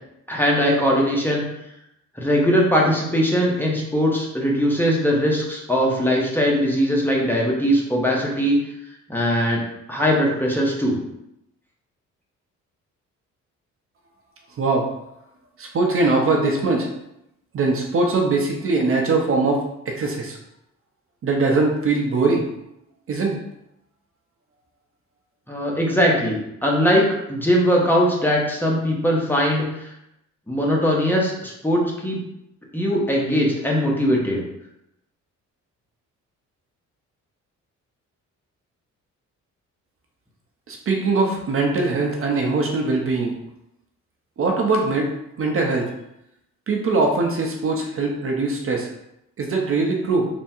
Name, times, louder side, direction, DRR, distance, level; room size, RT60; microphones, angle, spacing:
voice 1, 0.3-1.4 2.2-8.6 9.1-9.6 9.9-11.0 25.5-29.9 30.5-32.2 32.7-34.4, equal, 5° left, -3 dB, 0.9 m, -20 dB
voice 2, 14.6-14.9 15.6-16.9 17.5-20.4 21.2-22.4 23.1-23.4 40.7-43.3 44.4-45.1 45.4-45.9 46.7-48.9 49.4-50.3, right 3 dB, 45° right, 1 dB, 0.7 m, -21 dB
3.5 x 2.1 x 4.3 m, 0.83 s
cardioid pair, 90°, 30 cm